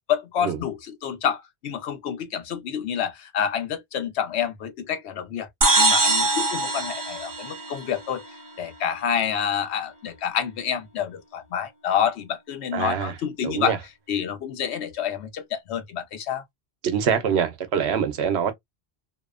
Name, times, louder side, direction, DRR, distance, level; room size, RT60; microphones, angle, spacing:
voice 1, 0.1-5.5 5.8-8.2 8.6-13.8 14.1-16.4, left 8 dB, 85° left, 0.9 m, -28 dB
sound 1, 5.6-8.2, right 2 dB, 25° right, 0.4 m, -22 dB
voice 2, 12.7-13.1 13.4-13.8 16.8-18.5, right 7 dB, 80° right, 0.9 m, -24 dB
2.7 x 2.1 x 2.3 m
omnidirectional pair, 1.1 m